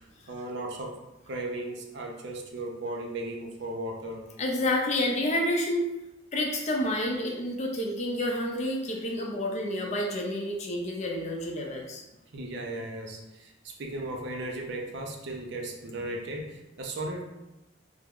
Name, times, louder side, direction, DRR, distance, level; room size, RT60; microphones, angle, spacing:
voice 1, 0.3-1.0 1.3-4.2 12.3-17.2, right 1 dB, 55° right, 1 dB, 0.5 m, -36 dB
voice 2, 4.4-5.9 6.3-12.0, left 1 dB, 35° left, 0 dB, 0.5 m, -29 dB
3.4 x 2.0 x 3.6 m, 0.97 s
head